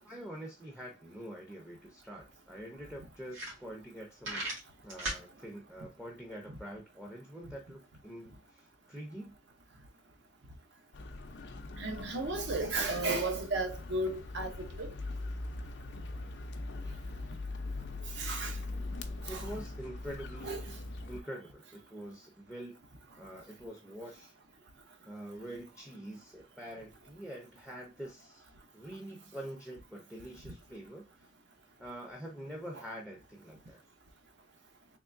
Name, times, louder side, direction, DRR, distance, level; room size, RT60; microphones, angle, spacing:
voice 1, 0.0-4.5 4.8-9.3 19.3-20.7 21.1-22.8 23.2-24.3 25.0-31.3 31.8-33.8, equal, 5° right, 0.6 m, -45 dB
sound 1, 1.9-2.0 2.3-2.4 2.9-3.0 3.2-3.9 4.2-5.2, right 1 dB, 80° right, 1.9 m, -37 dB
sound 2, 10.9-21.2, left 2 dB, 60° left, 0.5 m, -41 dB
voice 2, 11.8-14.9 18.2-18.5 19.2-19.4 20.4-20.6, right 2 dB, 60° right, 0.7 m, -34 dB
3.6 x 3.2 x 2.5 m
head